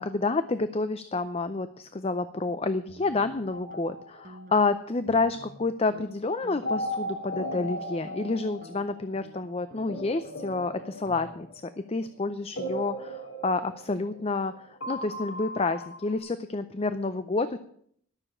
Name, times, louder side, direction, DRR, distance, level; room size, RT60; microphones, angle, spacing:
voice 1, 0.0-11.5 11.9-14.5 14.9-17.6, left 3 dB, 30° left, 12 dB, 0.5 m, -29 dB
sound 1, 2.9-3.9 4.2-4.7 5.1-5.6 5.9-6.1 6.4-6.9 7.3-11.6, right 1 dB, 40° right, 1.1 m, -50 dB
sound 2, 3.5-4.8 6.6-9.2 9.9-11.8 12.6-14.5 14.8-16.2, equal, 65° left, 2.7 m, -37 dB
12.5 x 6.8 x 8.7 m, 0.64 s
head